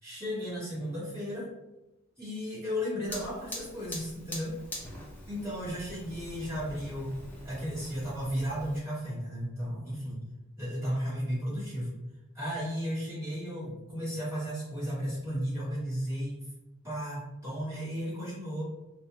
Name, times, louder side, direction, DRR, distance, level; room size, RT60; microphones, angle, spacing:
voice 1, 0.0-1.5 2.2-4.5 5.3-7.1 7.4-10.3 10.6-11.9 12.3-16.4 16.8-18.6, equal, 10° right, -11 dB, 1.4 m, -34 dB
Fire, 3.0-8.8, left 1 dB, 10° left, 0.4 m, -44 dB
2.4 x 2.2 x 2.9 m, 1.0 s
head